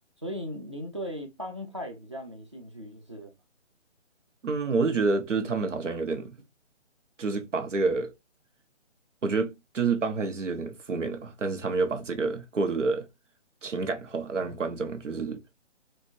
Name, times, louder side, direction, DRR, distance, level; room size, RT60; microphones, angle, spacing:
voice 1, 0.2-3.3, equal, 25° right, 0.5 m, -38 dB
voice 2, 4.4-6.4 7.2-8.1 9.2-13.1 13.6-15.4, right 4 dB, 90° right, 1.2 m, -28 dB
4.5 x 2.6 x 2.7 m
hypercardioid pair, 175°, 36 cm